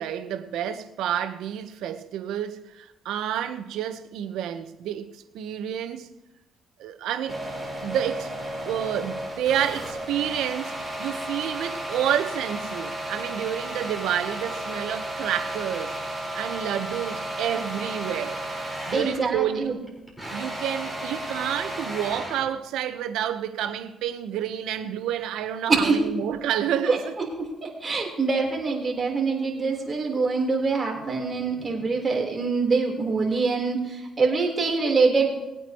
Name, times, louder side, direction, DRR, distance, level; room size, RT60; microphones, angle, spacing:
voice 1, 0.0-6.1 6.8-7.4 7.8-8.3 8.6-18.4 18.9-19.9 20.3-27.1, right 10 dB, 90° right, 1.1 m, -29 dB
sound 1, 7.3-19.3 19.6-22.5, right 1 dB, 5° left, 4.7 m, -33 dB
voice 2, 18.9-19.7 25.7-26.0 26.9-27.0 27.4-35.3, right 4 dB, 30° right, 3.9 m, -24 dB
20.5 x 9.1 x 3.1 m
cardioid pair, 90°, 0 cm